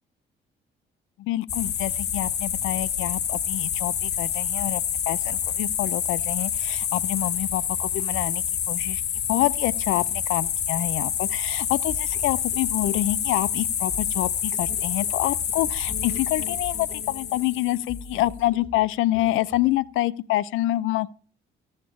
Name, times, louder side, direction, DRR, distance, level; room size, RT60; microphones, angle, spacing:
voice 1, 1.2-9.0 9.3-21.1, left 15 dB, 90° left, 0.5 m, -27 dB
sound 1, 1.5-18.2, left 8 dB, 60° left, 1.0 m, -27 dB
sound 2, 11.9-19.9, left 1 dB, 5° left, 5.2 m, -45 dB
14.5 x 6.6 x 7.0 m
cardioid pair, 90°, 20 cm